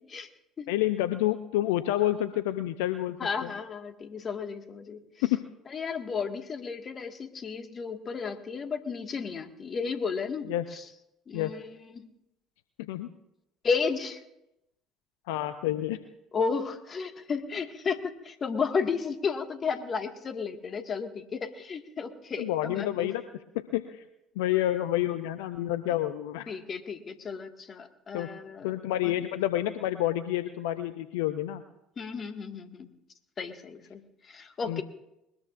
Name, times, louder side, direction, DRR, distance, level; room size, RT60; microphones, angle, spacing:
voice 1, 0.7-3.5 5.2-5.4 10.5-10.6 11.3-11.5 12.9-13.1 15.3-16.0 22.4-23.2 23.7-24.0 24.4-26.5 28.1-28.3 28.6-31.6 34.7-34.8, left 14 dB, 70° left, 11 dB, 0.6 m, -28 dB
voice 2, 3.2-5.0 5.7-10.8 11.3-11.7 11.9-12.1 13.6-14.2 16.3-23.1 26.5-28.7 29.0-29.1 32.0-32.9 33.4-34.8, left 5 dB, 40° left, 6 dB, 1.8 m, -33 dB
21.5 x 20.0 x 2.6 m, 0.87 s
figure-of-eight pair, 55°, 0 cm